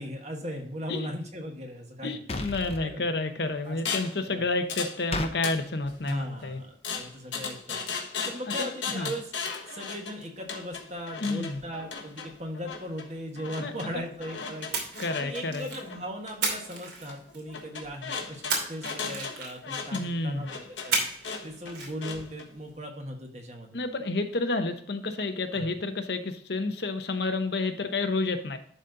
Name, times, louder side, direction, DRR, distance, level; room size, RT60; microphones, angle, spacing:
voice 1, 0.0-2.2 2.8-3.0 3.6-3.8 4.3-4.5 6.0-7.8 8.3-9.3 9.7-14.8 15.2-21.0 21.4-23.8 25.5-25.7, equal, 35° right, 2 dB, 1.4 m, -38 dB
voice 2, 2.0-6.6 8.6-9.1 11.2-11.6 13.6-14.0 15.0-15.7 19.9-20.5 23.7-28.6, left 3 dB, 65° left, 7 dB, 0.8 m, -30 dB
sound 1, 2.3-2.8 5.1-5.3, left 2 dB, 35° left, 0.8 m, -32 dB
sound 2, 3.9-4.2 4.7-5.0 5.3-6.1 6.8-22.5, left 5 dB, 90° left, 1.4 m, -37 dB
Splash splatter, 14.7-15.9 16.4-17.6 18.5-19.8 20.9-21.4 21.7-21.9, right 4 dB, 75° right, 2.7 m, -31 dB
11.5 x 4.1 x 3.9 m, 0.62 s
head